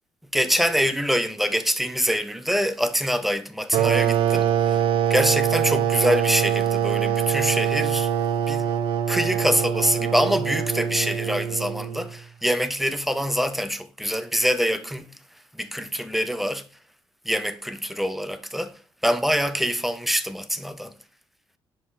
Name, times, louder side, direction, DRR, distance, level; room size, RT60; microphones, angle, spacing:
voice 1, 0.3-4.8 5.1-8.1 8.5-8.7 9.1-15.1 15.5-16.6 17.2-20.9, equal, ahead, 0.6 m, -25 dB
sound 1, 3.7-12.1, right 9 dB, 90° right, 0.7 m, -23 dB
6.8 x 5.1 x 3.7 m
cardioid pair, 130°, 9 cm